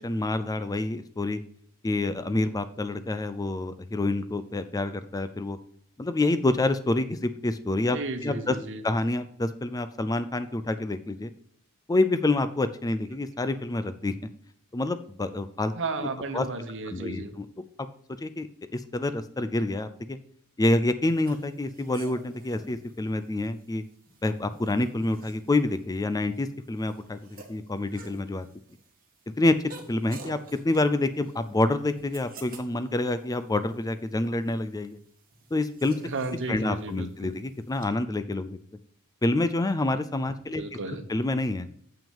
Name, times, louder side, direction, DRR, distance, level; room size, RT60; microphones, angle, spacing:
voice 1, 0.0-1.4 1.8-5.6 6.0-8.0 8.2-8.6 8.8-11.3 11.9-14.1 14.7-15.7 16.3-16.5 16.9-17.5 18.2-20.2 20.6-23.8 24.2-28.5 29.4-30.4 30.6-35.0 35.5-36.0 36.5-38.6 39.2-41.7, left 2 dB, 15° left, 12 dB, 0.4 m, -27 dB
voice 2, 7.9-8.8 15.8-17.3 36.0-37.3 40.5-41.1, right 3 dB, 55° right, 8 dB, 1.1 m, -34 dB
sound 1, 21.0-37.9, right 3 dB, 40° right, 1.6 m, -51 dB
7.0 x 6.0 x 5.4 m, 0.66 s
head